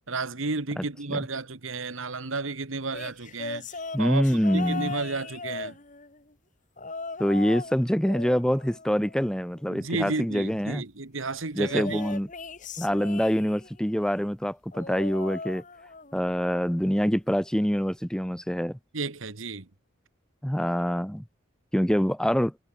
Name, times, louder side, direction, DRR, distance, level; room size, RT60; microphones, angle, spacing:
voice 1, 0.1-3.7 4.0-4.3 4.5-5.8 9.7-12.0 18.9-19.7, right 3 dB, 80° right, 1.7 m, -32 dB
voice 2, 0.8-1.2 3.9-4.9 7.2-10.8 11.5-12.3 12.8-15.6 16.1-18.8 20.4-21.2 21.7-22.5, equal, 5° left, 1.0 m, -25 dB
sound 1, 2.9-6.2 6.8-7.8 8.0-9.6 11.6-13.8 14.7-16.2 16.5-16.9 18.0-18.1, left 3 dB, 40° left, 1.7 m, -38 dB
head